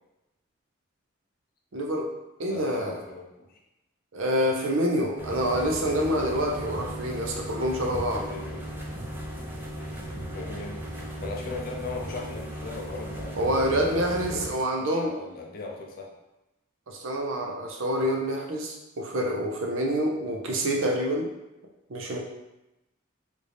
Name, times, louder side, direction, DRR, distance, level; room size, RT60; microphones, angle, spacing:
voice 1, 1.7-2.1 2.4-3.0 4.1-8.3 13.4-15.1 16.9-21.3 21.9-22.2, equal, 75° right, 1 dB, 0.6 m, -27 dB
voice 2, 2.5-3.6 8.3-8.6 10.3-10.9 11.2-16.1, left 3 dB, 45° left, 0 dB, 0.5 m, -38 dB
sound 1, 5.2-14.5, right 1 dB, 10° right, 0.4 m, -36 dB
3.4 x 2.6 x 3.3 m, 0.95 s
head